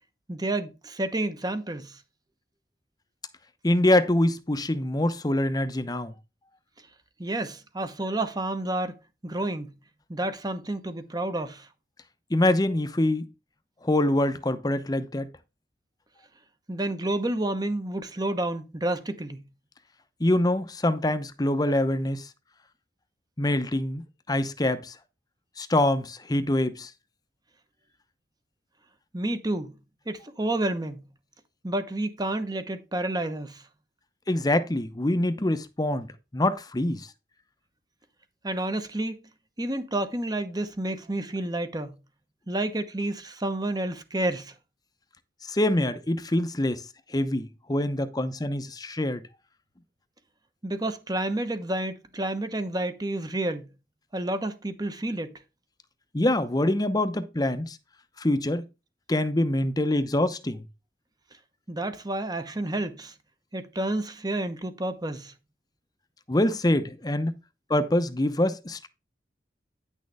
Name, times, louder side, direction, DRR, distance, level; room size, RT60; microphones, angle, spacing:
voice 1, 0.3-2.0 7.2-8.9 9.2-9.7 10.1-11.7 16.7-19.4 29.1-29.7 30.1-31.0 31.6-33.6 38.4-39.2 39.6-42.0 42.5-44.5 50.6-53.7 54.1-55.4 61.7-63.1 63.5-65.3, right 1 dB, 20° right, 0.9 m, -30 dB
voice 2, 3.6-6.1 12.3-13.2 13.8-15.3 20.2-22.3 23.4-24.9 25.6-26.9 34.3-36.1 36.3-37.1 45.5-46.8 47.1-49.2 56.1-57.8 58.2-58.6 59.1-60.6 66.3-67.3 67.7-68.9, left 1 dB, 20° left, 0.8 m, -25 dB
9.8 x 6.4 x 3.4 m
head